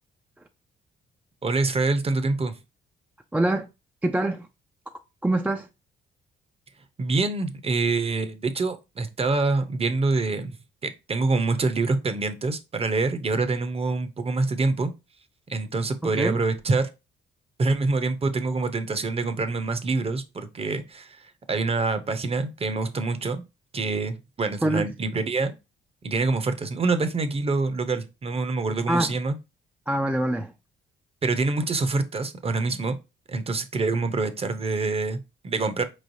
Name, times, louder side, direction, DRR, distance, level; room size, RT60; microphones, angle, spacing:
voice 1, 1.4-2.6 7.0-10.5 10.8-14.9 15.5-16.9 17.6-23.4 23.7-25.5 26.0-29.4 31.2-33.0 33.3-35.8, right 3 dB, 30° right, 0.7 m, -26 dB
voice 2, 3.3-3.7 4.0-4.5 5.2-5.7 16.0-16.4 24.6-24.9 28.9-29.2 29.9-30.5, right 1 dB, 10° right, 0.3 m, -24 dB
4.6 x 3.2 x 2.6 m
cardioid pair, 90°, 20 cm